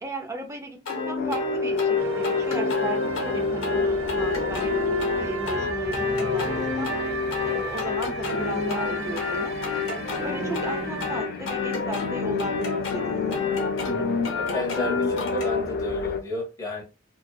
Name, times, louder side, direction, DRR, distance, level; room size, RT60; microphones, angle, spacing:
voice 1, 0.0-7.0 7.4-9.6 10.2-13.4, right 1 dB, 15° right, 0.5 m, -35 dB
sound 1, 0.9-15.6, left 4 dB, 70° left, 0.8 m, -30 dB
sound 2, 1.2-16.2, left 3 dB, 50° left, 0.3 m, -30 dB
sound 3, 2.0-11.2, right 3 dB, 70° right, 0.5 m, -34 dB
voice 2, 13.9-16.8, left 3 dB, 15° left, 0.7 m, -32 dB
2.6 x 2.3 x 2.2 m
head